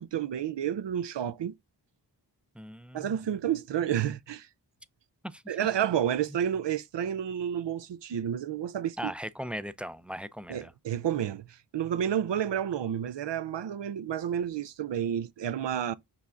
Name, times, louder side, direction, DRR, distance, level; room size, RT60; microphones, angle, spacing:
voice 1, 0.0-1.5 2.9-4.5 5.5-9.1 10.5-15.9, right 9 dB, 75° right, 0.5 m, -30 dB
voice 2, 2.6-3.2 5.2-5.6 9.0-10.7, equal, 5° right, 0.3 m, -39 dB
5.8 x 3.2 x 2.5 m
cardioid pair, 50°, 44 cm